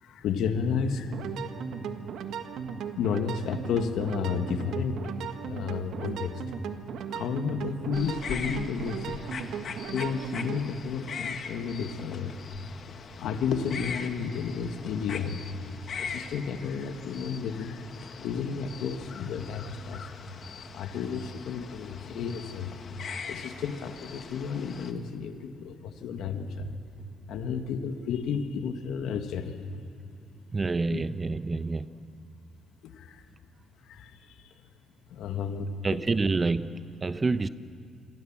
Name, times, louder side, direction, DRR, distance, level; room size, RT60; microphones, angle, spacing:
voice 1, 0.0-1.2 3.0-5.1 5.4-6.4 7.1-9.2 9.9-12.3 13.2-15.4 16.0-17.8 18.2-20.1 20.7-22.8 23.3-26.8 27.3-29.7 30.9-31.0 32.8-33.2 33.9-34.5 35.1-36.0, left 6 dB, 80° left, 1.7 m, -32 dB
sound 1, 1.0-10.6, right 7 dB, 80° right, 1.5 m, -37 dB
sound 2, 7.9-24.9, left 6 dB, 55° left, 1.7 m, -41 dB
voice 2, 30.5-31.9 35.8-37.5, right 3 dB, 30° right, 0.8 m, -28 dB
27.5 x 24.0 x 7.4 m
cardioid pair, 90°, 0 cm